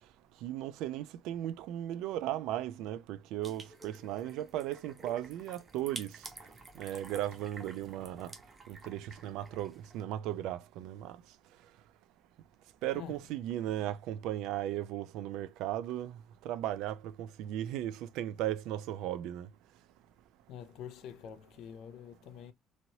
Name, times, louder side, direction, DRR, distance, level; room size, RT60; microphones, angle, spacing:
voice 1, 0.4-6.1 6.8-8.3 8.7-11.2 12.8-16.2 16.4-19.5, right 12 dB, 65° right, 0.3 m, -36 dB
sound 1, 3.4-10.0, right 2 dB, 15° right, 0.6 m, -50 dB
voice 2, 20.5-22.5, left 9 dB, 55° left, 0.5 m, -46 dB
3.0 x 2.9 x 2.7 m
cardioid pair, 180°, 0 cm